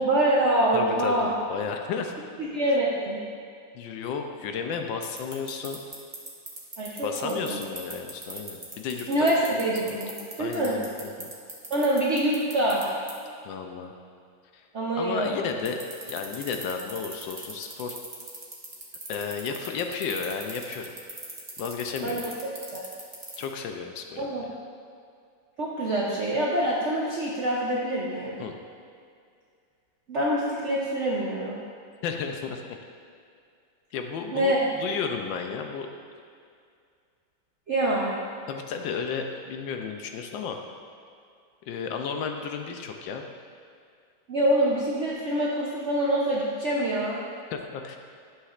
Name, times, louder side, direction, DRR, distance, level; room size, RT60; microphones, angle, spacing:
voice 1, 0.0-1.3 2.4-3.2 6.8-7.6 9.1-10.8 11.7-12.8 14.7-15.4 22.0-22.2 22.7-22.8 24.2-24.5 25.6-28.4 30.1-31.6 34.3-34.7 37.7-38.1 44.3-47.2, right 1 dB, 60° right, -5 dB, 0.7 m, -25 dB
voice 2, 0.7-2.1 3.7-5.8 7.0-9.3 9.8-10.0 10.4-11.3 13.4-13.9 14.5-14.6 15.0-15.8 16.1-18.0 19.1-20.9 21.6-22.2 23.4-24.3 28.4-28.5 32.0-32.6 33.9-35.9 38.5-40.6 41.7-43.2 47.5-48.0, left 6 dB, 75° left, 4 dB, 1.3 m, -33 dB
sound 1, 5.0-12.8 13.1-13.2 15.6-23.4, right 3 dB, 20° right, 0.9 m, -38 dB
11.0 x 6.4 x 2.5 m, 2.3 s
omnidirectional pair, 2.2 m